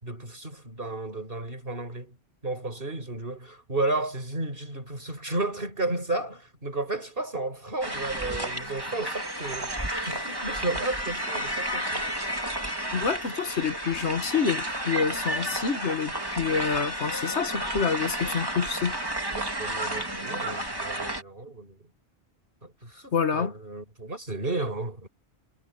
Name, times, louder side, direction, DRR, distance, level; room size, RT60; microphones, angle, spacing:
voice 1, 0.0-2.2 2.4-12.1 19.3-21.8 22.6-25.1, right 2 dB, 55° right, 5.4 m, -33 dB
sound 1, 7.8-21.2, right 1 dB, 20° right, 2.5 m, -32 dB
voice 2, 12.9-19.1 23.1-23.5, left 6 dB, 85° left, 1.8 m, -27 dB
omnidirectional pair, 1.1 m